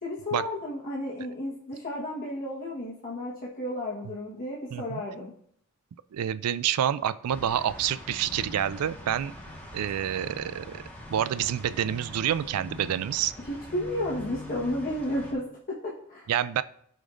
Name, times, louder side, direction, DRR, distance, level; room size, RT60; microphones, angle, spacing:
voice 1, 0.0-5.3 13.5-16.3, left 1 dB, 40° left, -5 dB, 1.3 m, -33 dB
voice 2, 4.7-5.0 6.1-9.3 9.7-10.8 11.1-13.3 16.3-16.6, right 10 dB, 90° right, 16 dB, 0.3 m, -28 dB
sound 1, 7.3-15.3, left 1 dB, 10° left, 1.4 m, -43 dB
13.5 x 5.2 x 2.5 m, 0.66 s
head